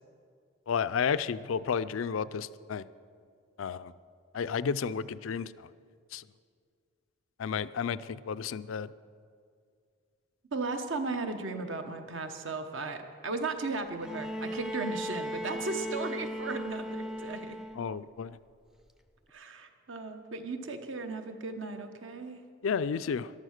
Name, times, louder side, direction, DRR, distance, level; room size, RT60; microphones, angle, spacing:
voice 1, 0.7-2.8 3.6-3.9 4.3-5.7 6.1-6.2 7.4-8.9 17.8-18.3 22.6-23.3, left 6 dB, 80° left, 16 dB, 0.4 m, -32 dB
voice 2, 10.5-17.6 19.3-22.4, right 3 dB, 70° right, 7 dB, 1.1 m, -36 dB
Bowed string instrument, 14.0-18.0 19.3-19.4, equal, ahead, 0.4 m, -37 dB
14.0 x 11.5 x 6.5 m, 2.2 s
head